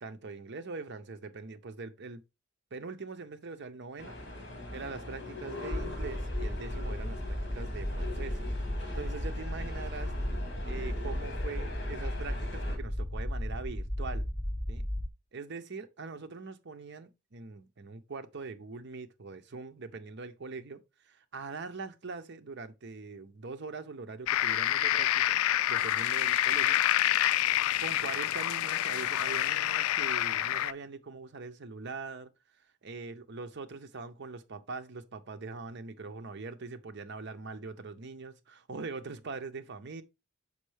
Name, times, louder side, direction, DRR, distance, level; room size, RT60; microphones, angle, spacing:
voice 1, 0.0-2.2 2.7-4.2 4.7-8.4 8.9-10.1 10.6-14.3 14.7-14.9 15.3-25.4 25.7-26.8 27.8-32.3 32.8-40.0, right 4 dB, 55° right, 0.7 m, -42 dB
sound 1, 4.0-12.8, left 2 dB, 55° left, 2.2 m, -41 dB
sound 2, 5.7-15.1, equal, 5° left, 0.3 m, -35 dB
sound 3, 24.3-30.7, left 12 dB, 90° left, 0.3 m, -27 dB
6.6 x 5.4 x 3.3 m
head